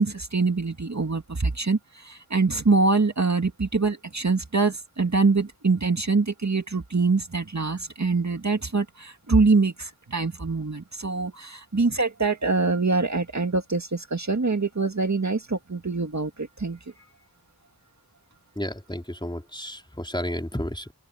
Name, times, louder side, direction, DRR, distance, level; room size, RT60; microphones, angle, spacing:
voice 1, 0.0-16.8, right 3 dB, 45° right, 2.1 m, -24 dB
voice 2, 18.6-20.9, left 1 dB, 10° left, 3.9 m, -32 dB
wide cardioid pair, 60°, 37 cm